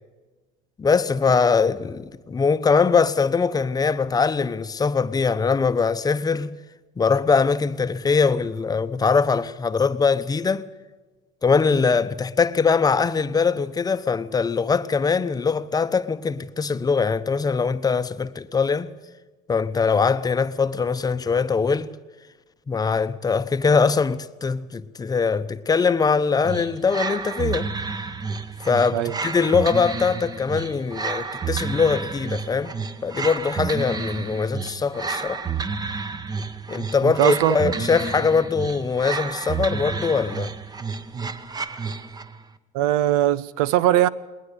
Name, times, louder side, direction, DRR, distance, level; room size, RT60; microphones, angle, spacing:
voice 1, 0.8-6.5 7.0-10.7 11.4-18.9 19.5-21.9 22.7-27.7 28.6-32.7 33.0-35.4 36.7-40.5, left 5 dB, 20° left, 0.9 m, -22 dB
sound 1, 26.4-42.4, right 4 dB, 20° right, 1.1 m, -30 dB
voice 2, 37.0-37.8 42.7-44.1, right 13 dB, 75° right, 0.8 m, -20 dB
20.0 x 20.0 x 6.7 m
supercardioid pair, 100°, 18 cm